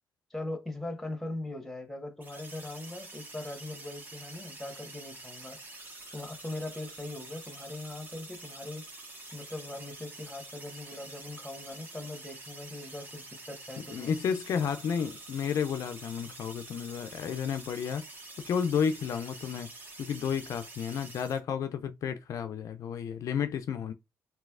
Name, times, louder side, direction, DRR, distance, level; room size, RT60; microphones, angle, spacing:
voice 1, 0.3-5.6 6.1-8.8 9.3-14.2, left 2 dB, 5° left, 1.2 m, -40 dB
sound 1, 2.2-21.4, right 2 dB, 30° right, 1.3 m, -47 dB
voice 2, 13.8-19.7 20.0-23.9, left 7 dB, 60° left, 0.4 m, -32 dB
3.1 x 3.0 x 2.3 m
supercardioid pair, 70°, 6 cm